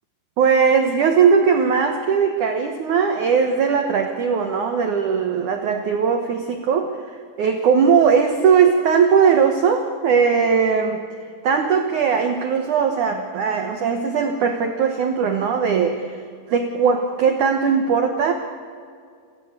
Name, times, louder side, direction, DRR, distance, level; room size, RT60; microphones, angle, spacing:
voice 1, 0.4-6.9 7.4-11.0 11.4-16.2 16.5-18.3, right 6 dB, 90° right, 5 dB, 1.7 m, -19 dB
28.5 x 15.0 x 8.2 m, 2.2 s
omnidirectional pair, 5.6 m